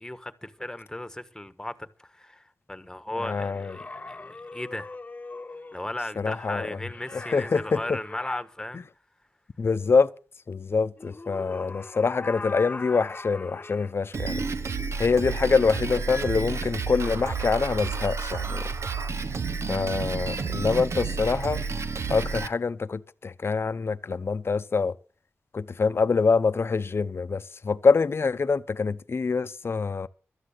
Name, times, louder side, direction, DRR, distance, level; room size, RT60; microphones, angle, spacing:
voice 1, 0.0-4.9 5.7-8.9, left 1 dB, 10° left, 1.4 m, -36 dB
voice 2, 3.2-3.8 6.2-6.7 7.1-8.0 9.6-10.1 10.5-14.4 15.0-18.7 19.7-21.6 22.1-25.0 25.5-30.1, left 4 dB, 55° left, 0.8 m, -25 dB
sound 1, 3.5-5.9 6.9-8.4 11.0-13.9, left 3 dB, 30° left, 1.0 m, -40 dB
Drum kit, 14.1-22.5, right 4 dB, 65° right, 1.0 m, -30 dB
13.0 x 9.7 x 6.7 m
cardioid pair, 65°, 5 cm